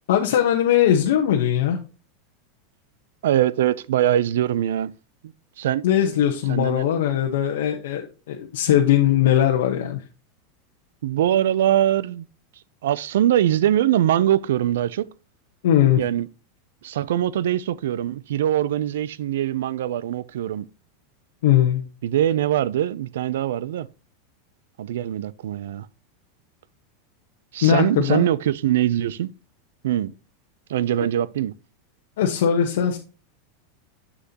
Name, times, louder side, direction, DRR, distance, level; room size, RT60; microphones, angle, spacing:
voice 1, 0.1-1.8 5.8-8.0 8.3-10.0 15.6-16.0 21.4-21.8 27.6-28.3 32.2-33.0, left 10 dB, 80° left, 1.0 m, -19 dB
voice 2, 3.2-4.9 5.2-5.8 6.5-6.9 11.0-12.2 12.8-15.1 16.0-16.3 16.8-20.7 22.0-23.9 24.8-25.9 27.5-29.3 29.8-30.1 30.7-31.5, right 11 dB, 90° right, 0.4 m, -22 dB
7.4 x 6.6 x 2.8 m
supercardioid pair, 165°, 0 cm